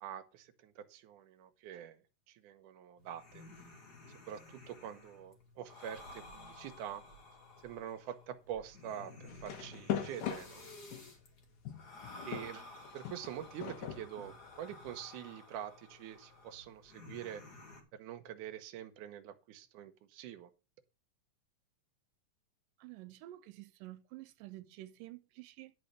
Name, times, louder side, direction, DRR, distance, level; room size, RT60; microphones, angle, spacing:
voice 1, 0.0-2.0 2.3-3.4 4.3-7.0 7.6-10.6 12.2-12.7 12.9-17.4 17.9-20.5, right 10 dB, 75° right, 2.4 m, -45 dB
sound 1, 3.0-17.8, left 2 dB, 35° left, 2.1 m, -54 dB
sound 2, 9.3-11.1 11.7-14.9, left 9 dB, 80° left, 2.9 m, -41 dB
voice 2, 22.8-25.7, right 16 dB, 90° right, 2.3 m, -50 dB
11.0 x 4.3 x 6.6 m
omnidirectional pair, 3.8 m